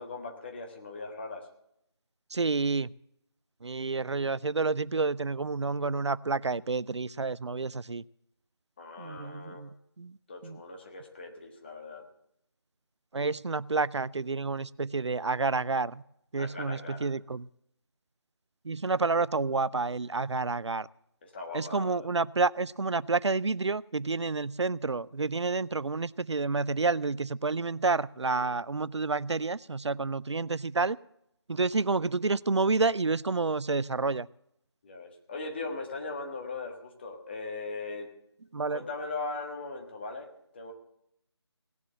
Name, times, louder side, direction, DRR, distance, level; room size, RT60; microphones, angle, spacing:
voice 1, 0.0-1.5 8.8-9.6 10.3-12.0 16.4-17.1 21.2-22.1 28.2-28.5 34.8-38.1 38.7-40.7, left 3 dB, 25° left, 1.5 m, -39 dB
voice 2, 2.3-2.9 3.6-8.0 9.0-9.7 10.0-10.1 13.1-15.9 16.3-17.4 18.7-20.9 21.5-31.0 31.5-34.3 38.5-38.8, right 3 dB, 85° right, 0.4 m, -29 dB
18.0 x 7.3 x 7.3 m
figure-of-eight pair, 160°, 14 cm